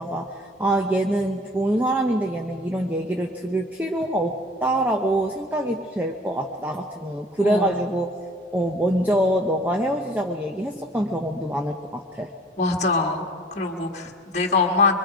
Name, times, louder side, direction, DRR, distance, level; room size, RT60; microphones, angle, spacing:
voice 1, 0.0-8.1 8.5-12.3, right 1 dB, 10° right, 3 dB, 0.8 m, -25 dB
voice 2, 7.4-7.8 12.6-13.3 13.5-15.0, left 3 dB, 35° left, 1 dB, 1.6 m, -23 dB
24.5 x 23.5 x 5.1 m, 2.2 s
head